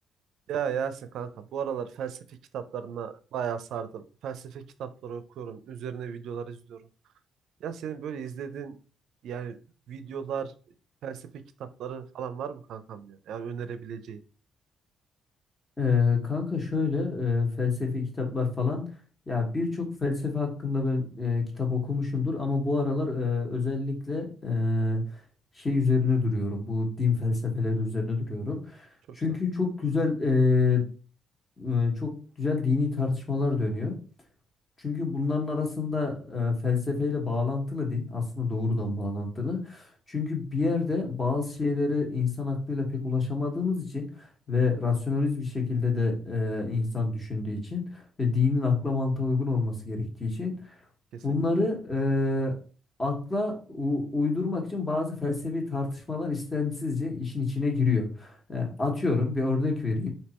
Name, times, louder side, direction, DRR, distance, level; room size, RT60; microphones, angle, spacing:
voice 1, 0.5-6.8 7.6-8.8 9.2-9.6 9.9-10.5 11.0-14.2 29.1-29.2 51.1-51.2, right 7 dB, 75° right, 12 dB, 0.4 m, -35 dB
voice 2, 15.8-18.8 19.3-25.0 25.6-28.9 29.1-30.9 31.6-34.0 34.8-50.7 51.2-52.6 53.0-60.1, left 4 dB, 25° left, 1 dB, 1.4 m, -27 dB
3.5 x 2.7 x 4.2 m, 0.38 s
cardioid pair, 90°, 0 cm